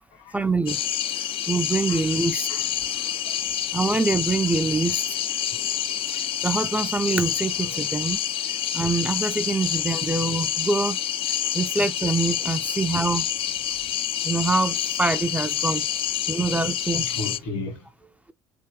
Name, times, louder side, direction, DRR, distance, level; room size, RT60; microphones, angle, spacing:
voice 1, 0.3-0.8 1.5-2.5 3.7-5.2 6.1-8.2 8.7-11.0 11.5-13.3 14.2-15.8 16.3-17.1, right 3 dB, 10° right, 0.5 m, -25 dB
sound 1, 0.7-17.4, left 10 dB, 40° left, 0.4 m, -27 dB
voice 2, 2.5-3.1 7.6-7.9 12.5-12.6 15.7-15.8 17.0-18.1, left 2 dB, 65° left, 1.8 m, -36 dB
3.5 x 2.9 x 3.0 m
figure-of-eight pair, 55°, 14 cm